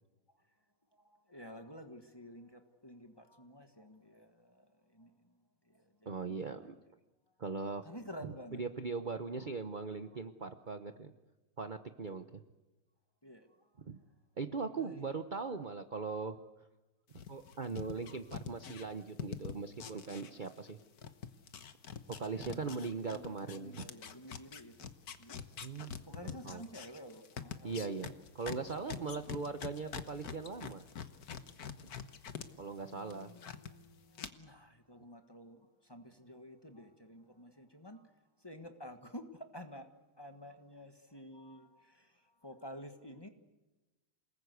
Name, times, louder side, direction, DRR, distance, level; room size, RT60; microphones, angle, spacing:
voice 1, 1.0-5.3 5.7-6.7 7.8-8.6 13.2-13.5 14.8-15.2 22.3-25.5 26.1-27.8 29.0-29.2 32.7-39.9 40.2-43.3, equal, 15° left, 6 dB, 1.4 m, -51 dB
voice 2, 6.1-6.7 7.4-7.9 8.2-11.1 11.6-12.4 13.9-14.0 14.4-16.4 17.3-20.8 22.2-23.9 25.6-25.9 26.2-26.6 27.6-30.8 32.6-33.3, right 4 dB, 50° right, 8 dB, 0.6 m, -40 dB
sound 1, 17.1-20.7 21.0-32.5 32.8-33.7 34.2-34.3, left 7 dB, 50° left, 1.5 m, -45 dB
28.0 x 19.5 x 8.2 m, 1.1 s
omnidirectional pair, 2.3 m